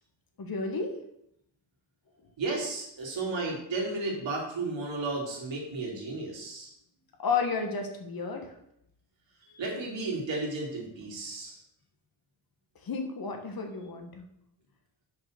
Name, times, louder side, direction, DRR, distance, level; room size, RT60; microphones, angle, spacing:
voice 1, 0.4-1.0 7.2-8.6 12.8-14.3, left 5 dB, 45° left, 3 dB, 1.4 m, -32 dB
voice 2, 2.4-6.7 9.4-11.6, right 3 dB, 60° right, -2 dB, 2.9 m, -33 dB
5.9 x 4.4 x 6.2 m, 0.75 s
cardioid pair, 80°, 49 cm